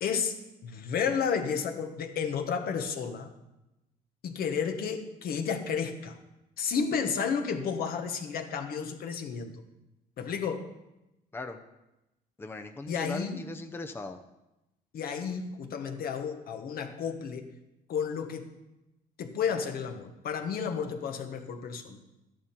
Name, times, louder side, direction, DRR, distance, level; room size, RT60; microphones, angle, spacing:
voice 1, 0.0-3.3 4.2-6.2 6.6-9.5 10.2-10.7 12.9-13.4 14.9-17.5 17.9-18.5 19.2-22.0, left 6 dB, 60° left, 6 dB, 1.4 m, -32 dB
voice 2, 12.4-14.2, left 2 dB, 15° left, 7 dB, 0.7 m, -39 dB
12.5 x 11.0 x 4.5 m, 0.95 s
cardioid pair, 110°, 17 cm